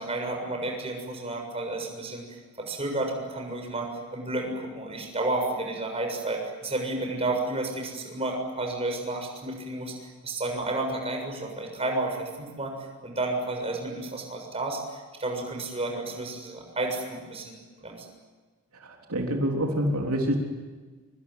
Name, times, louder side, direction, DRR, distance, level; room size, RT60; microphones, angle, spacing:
voice 1, 0.0-17.6 17.8-18.1, right 2 dB, 25° right, 2 dB, 7.1 m, -31 dB
voice 2, 18.8-20.4, equal, 75° right, 1 dB, 3.7 m, -27 dB
25.5 x 24.0 x 9.6 m, 1.4 s
head